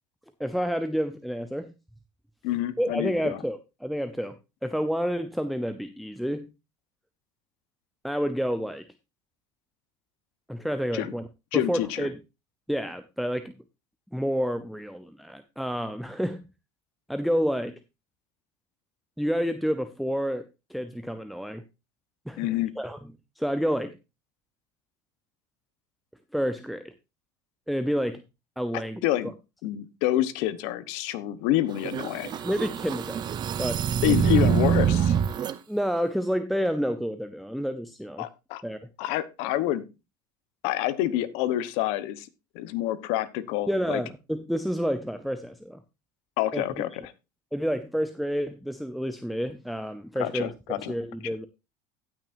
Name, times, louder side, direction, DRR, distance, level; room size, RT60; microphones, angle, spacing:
voice 1, 0.4-1.7 2.8-6.5 8.0-8.9 10.5-11.3 11.5-12.2 12.7-13.5 14.1-16.4 17.1-17.8 19.2-21.6 22.3-24.0 26.3-26.9 27.7-28.2 28.6-29.0 32.4-33.8 35.7-38.3 38.6-38.9 43.7-45.8 46.5-46.6 47.5-50.5 50.9-51.5, equal, ahead, 9 dB, 0.6 m, -29 dB
voice 2, 2.4-3.4 10.9-11.1 11.5-12.1 22.4-22.8 29.0-29.3 29.6-32.4 34.0-35.2 38.2-38.6 39.0-39.9 40.6-42.3 42.5-44.0 46.4-47.1 50.2-50.9, left 13 dB, 70° left, 14 dB, 1.0 m, -27 dB
sound 1, 31.8-35.5, right 7 dB, 40° right, 0.8 m, -25 dB
17.5 x 6.1 x 2.6 m, 0.26 s
supercardioid pair, 105°, 11 cm